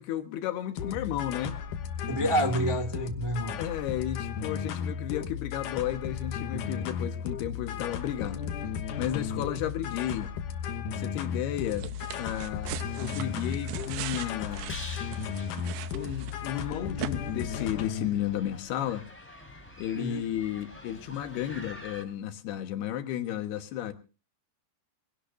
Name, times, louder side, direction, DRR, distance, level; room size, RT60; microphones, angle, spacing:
voice 1, 0.0-1.6 3.6-8.4 9.0-10.3 11.0-11.9 12.2-14.8 15.9-19.1 19.8-23.9, left 11 dB, 85° left, 3.4 m, -33 dB
sound 1, 0.8-18.1, left 7 dB, 65° left, 2.4 m, -35 dB
voice 2, 2.1-3.6 19.9-20.2, right 1 dB, 35° right, 0.4 m, -28 dB
sound 2, 11.7-16.6 17.0-17.1, right 13 dB, 80° right, 2.7 m, -39 dB
sound 3, 12.7-22.0, left 1 dB, 5° left, 3.7 m, -47 dB
23.5 x 17.0 x 2.6 m
omnidirectional pair, 4.5 m